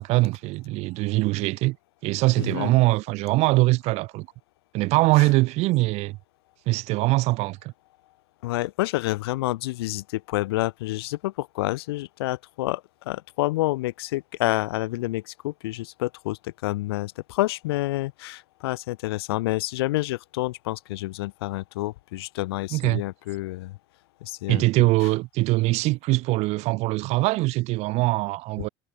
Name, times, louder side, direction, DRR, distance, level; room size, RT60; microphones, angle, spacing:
voice 1, 0.0-1.8 2.0-4.3 4.7-6.2 6.7-7.7 22.7-23.0 24.5-28.7, right 21 dB, 50° right, 2.9 m, -22 dB
voice 2, 2.4-2.7 5.2-5.3 8.4-23.8 24.2-24.9, left 18 dB, 60° left, 2.5 m, -28 dB
figure-of-eight pair, 75°, 15 cm